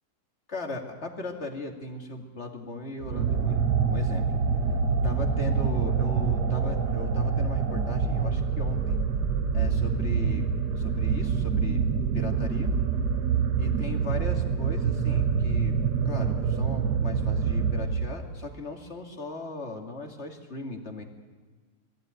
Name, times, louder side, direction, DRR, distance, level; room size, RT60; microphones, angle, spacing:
voice 1, 0.5-4.4 5.0-9.0 9.5-10.5 10.8-11.8 12.1-12.7 13.6-15.8 16.0-21.0, left 2 dB, 40° left, 3 dB, 2.3 m, -37 dB
sound 1, 3.0-18.4, right 6 dB, 85° right, 1.6 m, -26 dB
sound 2, 3.3-8.3, right 4 dB, 45° right, 2.1 m, -42 dB
20.5 x 15.0 x 9.1 m, 1.4 s
omnidirectional pair, 1.7 m